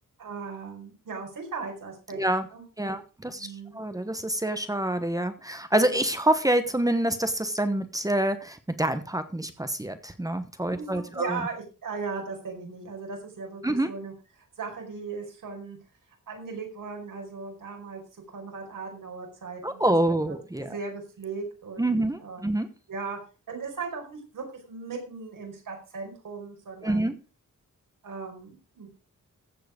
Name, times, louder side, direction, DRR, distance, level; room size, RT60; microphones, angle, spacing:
voice 1, 0.2-2.2 2.5-3.0 3.2-3.8 10.7-15.8 16.3-18.0 18.3-19.9 20.6-22.5 22.9-23.2 23.5-27.1 28.0-28.9, right 4 dB, 80° right, 2 dB, 5.0 m, -38 dB
voice 2, 2.1-2.5 2.8-11.4 13.6-13.9 19.6-20.7 21.8-22.7 26.8-27.2, right 1 dB, 10° right, 10 dB, 1.1 m, -27 dB
15.0 x 7.7 x 5.1 m, 0.33 s
wide cardioid pair, 170°, 32 cm